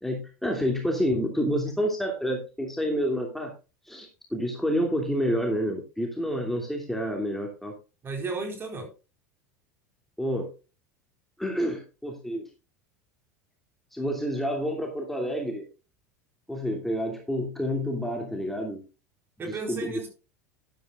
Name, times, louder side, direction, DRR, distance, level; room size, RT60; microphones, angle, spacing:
voice 1, 0.0-3.5 3.8-7.7 10.2-10.5 11.4-12.5 13.9-15.6 16.5-18.8 19.5-20.0, equal, 5° left, 1 dB, 2.7 m, -29 dB
voice 2, 8.0-8.9 19.4-20.1, right 3 dB, 25° right, 3 dB, 4.3 m, -34 dB
12.5 x 12.0 x 2.5 m, 0.31 s
figure-of-eight pair, 75°, 9 cm